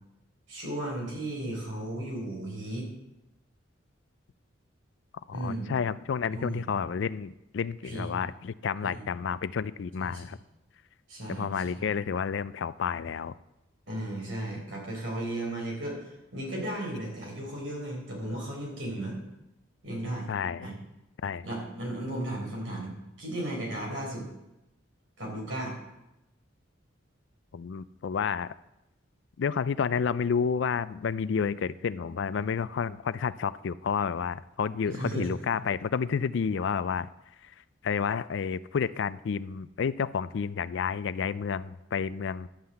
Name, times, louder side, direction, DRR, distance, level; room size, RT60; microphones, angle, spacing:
voice 1, 0.5-2.9 5.3-5.7 6.3-6.7 7.8-8.1 8.8-9.0 10.1-10.2 11.1-11.5 13.9-19.2 19.8-20.3 20.6-20.7 21.4-24.2 25.2-25.8 34.8-35.3, right 1 dB, 70° right, -2 dB, 4.2 m, -35 dB
voice 2, 5.3-10.4 11.3-13.4 20.3-20.7 21.2-21.5 27.5-28.5 29.4-37.1 37.4-37.5 37.8-42.5, left 6 dB, 60° left, 17 dB, 0.4 m, -30 dB
11.5 x 5.6 x 7.7 m, 0.92 s
head